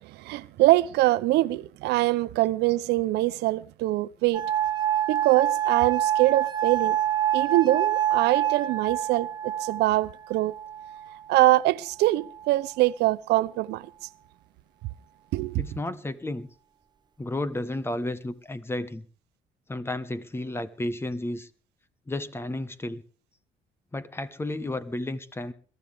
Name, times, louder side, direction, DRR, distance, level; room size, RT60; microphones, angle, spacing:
voice 1, 0.0-4.4 5.1-7.0 7.3-10.6 11.3-13.9 15.3-15.6, right 17 dB, 85° right, 0.6 m, -23 dB
sound 1, 4.3-11.3 12.1-12.7, right 11 dB, 25° right, 1.0 m, -27 dB
voice 2, 15.6-16.5 17.2-19.0 19.7-21.5 22.1-23.0 23.9-25.5, left 1 dB, 15° left, 1.2 m, -32 dB
22.0 x 13.5 x 3.5 m
cardioid pair, 110°, 17 cm